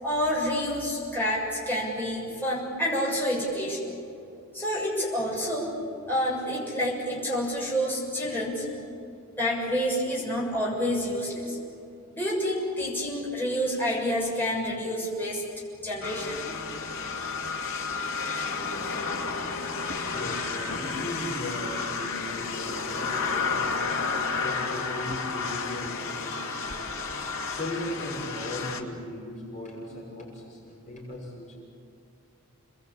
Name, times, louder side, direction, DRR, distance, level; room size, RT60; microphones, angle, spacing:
voice 1, 0.0-4.0 4.5-5.7 6.0-8.7 9.4-11.6 12.1-15.4 15.8-16.4, equal, 10° left, -5 dB, 7.0 m, -28 dB
sound 1, 16.0-28.8, left 4 dB, 65° left, 2.5 m, -31 dB
voice 2, 17.1-17.5 20.1-23.9 24.3-26.7 27.5-31.6, left 1 dB, 35° left, -3 dB, 6.4 m, -38 dB
29.0 x 21.5 x 8.5 m, 2.6 s
head